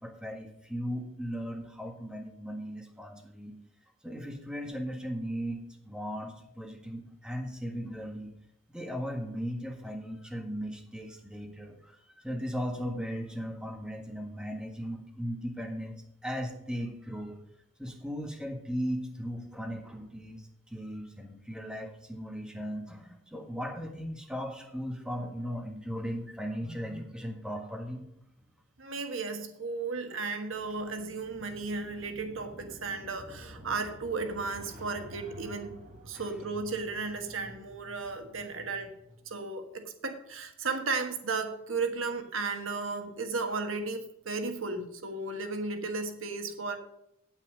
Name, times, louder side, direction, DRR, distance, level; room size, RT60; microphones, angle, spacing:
voice 1, 0.0-3.6 4.0-8.3 8.7-15.9 16.2-17.4 17.8-28.1 36.1-36.3, equal, 5° right, 2 dB, 1.6 m, -37 dB
voice 2, 28.8-35.8 36.1-38.9 39.3-46.8, right 4 dB, 90° right, 6 dB, 1.4 m, -34 dB
sound 1, 30.5-39.3, equal, 40° right, 2.0 m, -50 dB
8.9 x 8.8 x 5.2 m, 0.79 s
head